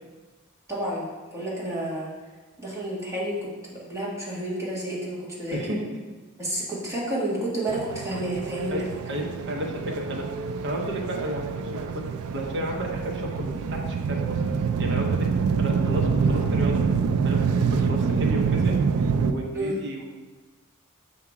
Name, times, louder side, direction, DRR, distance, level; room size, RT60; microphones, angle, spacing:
voice 1, 0.7-1.1 1.3-2.1 2.6-5.8 6.4-8.8 16.2-16.4 19.5-19.8, right 1 dB, 15° right, -7 dB, 1.6 m, -30 dB
voice 2, 5.5-5.8 8.7-10.3 10.6-12.0 12.3-14.4 14.8-15.3 15.6-16.8 17.2-17.4 17.7-18.8 19.2-20.0, equal, 55° right, 0 dB, 0.9 m, -32 dB
sound 1, 7.7-19.3, right 5 dB, 75° right, 0.3 m, -26 dB
6.9 x 2.8 x 4.7 m, 1.3 s
head